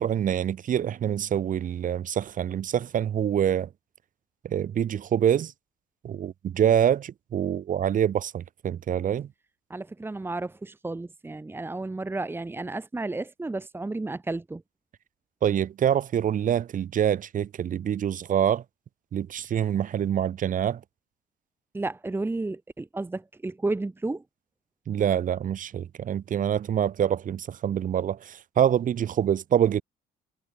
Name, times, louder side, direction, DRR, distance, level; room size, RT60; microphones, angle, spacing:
voice 1, 0.0-3.7 4.4-5.5 6.0-9.3 15.4-18.6 19.1-20.8 24.9-29.8, right 9 dB, 50° right, 4.9 m, -25 dB
voice 2, 9.7-14.6 21.7-24.2, right 2 dB, 15° right, 1.6 m, -32 dB
cardioid pair, 110°, 17 cm